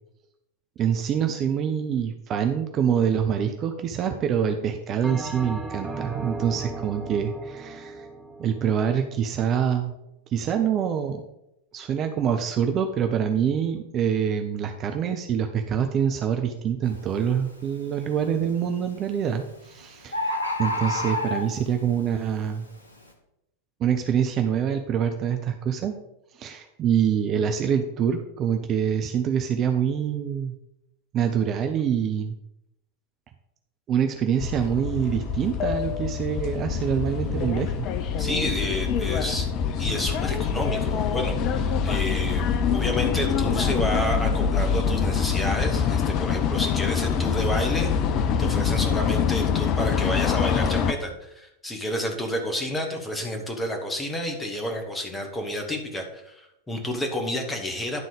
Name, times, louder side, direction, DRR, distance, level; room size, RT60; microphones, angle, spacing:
voice 1, 0.8-8.1 8.4-9.9 10.3-11.2 11.7-22.7 23.8-25.9 26.4-30.5 31.1-32.3 33.9-37.9, right 8 dB, 30° right, 6 dB, 0.6 m, -25 dB
Bell, 5.0-9.6, right 2 dB, 10° right, 1.2 m, -37 dB
Bird, 16.8-17.1 17.6-18.1 19.1-19.2 19.5-19.6 19.8-19.9 20.1-21.8 22.4-22.5, left 1 dB, 80° left, 1.2 m, -28 dB
sound 1, 34.4-50.9, left 7 dB, 40° left, 0.6 m, -25 dB
voice 2, 38.2-39.5 39.8-47.9 48.4-58.0, left 1 dB, 10° left, 2 dB, 1.6 m, -30 dB
11.0 x 3.7 x 5.1 m, 0.85 s
figure-of-eight pair, 90°, 0 cm